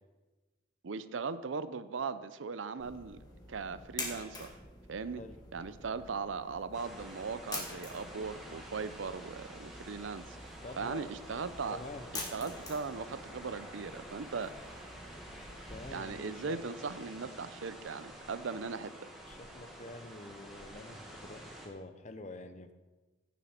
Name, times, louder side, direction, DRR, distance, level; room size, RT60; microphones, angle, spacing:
voice 1, 0.8-3.2 3.5-4.5 4.9-5.2 5.5-11.8 12.3-14.7 15.9-19.1, right 5 dB, 90° right, 14 dB, 0.6 m, -39 dB
sound 1, 2.8-15.9, left 2 dB, 20° left, 2.0 m, -47 dB
sound 2, 6.7-21.7, right 1 dB, ahead, 1.9 m, -49 dB
voice 2, 10.6-11.1 11.7-12.1 15.7-16.6 19.3-22.7, left 2 dB, 40° left, 9 dB, 0.8 m, -47 dB
Explosion, 15.2-17.4, left 1 dB, 65° left, 1.8 m, -62 dB
16.0 x 7.2 x 4.4 m, 1.2 s
head